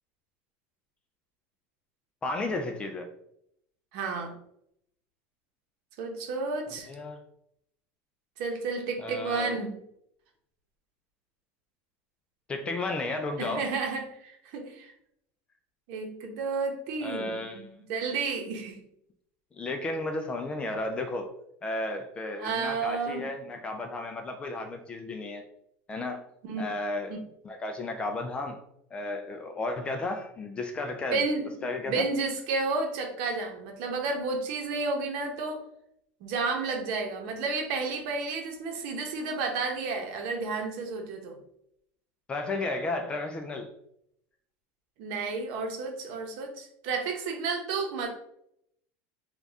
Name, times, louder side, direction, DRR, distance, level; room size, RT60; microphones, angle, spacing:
voice 1, 2.2-3.1 6.9-7.2 9.0-9.5 12.5-13.7 17.0-17.6 19.5-21.3 21.6-25.4 25.9-26.3 26.6-27.1 27.4-28.6 28.9-31.2 31.6-32.1 42.3-43.7, left 2 dB, 15° left, 5 dB, 0.3 m, -33 dB
voice 2, 3.9-4.3 6.0-6.9 8.4-9.8 13.4-14.9 15.9-18.8 22.4-23.2 26.5-26.6 27.1-27.2 31.1-31.5 31.9-35.6 36.2-41.4 45.0-48.1, right 4 dB, 60° right, 2 dB, 1.0 m, -31 dB
3.9 x 2.4 x 3.5 m, 0.74 s
cardioid pair, 165°, 6 cm